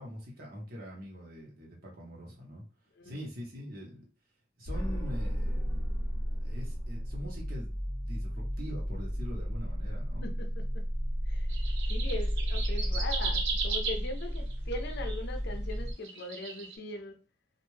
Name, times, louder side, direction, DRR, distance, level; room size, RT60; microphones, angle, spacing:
voice 1, 0.0-2.6 3.0-4.0 4.6-5.9 6.4-10.3, equal, 55° right, 1.0 m, -43 dB
sound 1, 4.6-15.9, equal, 25° left, 0.9 m, -33 dB
voice 2, 10.2-10.6 11.3-11.5 11.9-17.2, left 2 dB, 60° left, 0.5 m, -40 dB
sound 2, 11.5-15.2 15.7-16.8, right 5 dB, 75° right, 0.8 m, -36 dB
2.5 x 2.2 x 3.1 m
head